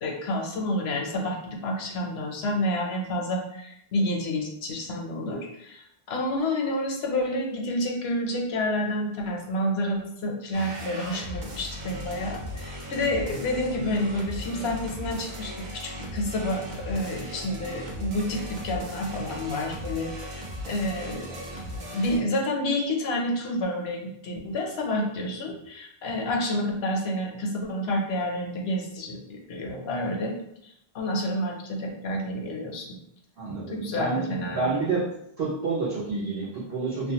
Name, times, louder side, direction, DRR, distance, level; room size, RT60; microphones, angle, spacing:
voice 1, 0.0-20.3 20.7-21.4 21.9-30.3 30.9-33.0 33.7-34.8, left 1 dB, 80° left, 0 dB, 0.9 m, -29 dB
sound 1, 10.5-22.2, equal, 55° right, 0.6 m, -37 dB
voice 2, 33.4-35.1 35.4-37.1, right 3 dB, 75° right, -7 dB, 1.0 m, -29 dB
2.4 x 2.2 x 2.8 m, 0.75 s
omnidirectional pair, 1.0 m